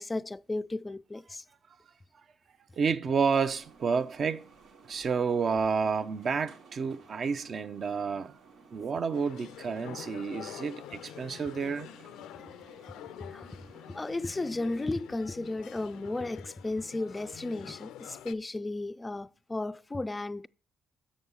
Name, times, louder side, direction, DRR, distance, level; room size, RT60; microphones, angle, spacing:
voice 1, 0.0-1.5 13.3-13.5 13.9-20.5, left 2 dB, 20° left, 0.3 m, -34 dB
voice 2, 2.8-4.5 4.9-8.4 8.7-11.9, right 5 dB, 50° right, 0.7 m, -30 dB
sound 1, 3.2-14.1, right 5 dB, 80° right, 1.7 m, -56 dB
sound 2, 9.1-18.3, left 11 dB, 90° left, 0.4 m, -47 dB
7.2 x 6.5 x 5.6 m
cardioid pair, 90°, 0 cm